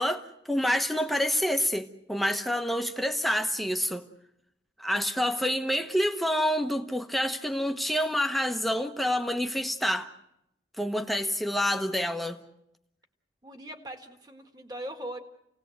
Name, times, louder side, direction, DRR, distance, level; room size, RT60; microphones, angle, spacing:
voice 1, 0.0-4.1 4.8-10.1 10.8-12.4, equal, ahead, 1.0 m, -27 dB
voice 2, 13.4-15.2, right 1 dB, 20° right, 1.8 m, -40 dB
29.0 x 18.0 x 7.9 m
head